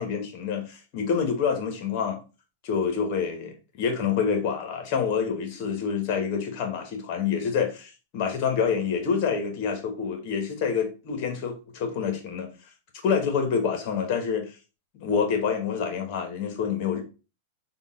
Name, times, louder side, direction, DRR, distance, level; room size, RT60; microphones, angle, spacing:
voice 1, 0.0-2.2 2.6-12.5 13.0-14.5 14.9-17.0, left 6 dB, 50° left, 1.2 m, -27 dB
3.7 x 2.4 x 3.5 m
hypercardioid pair, 125°, 0 cm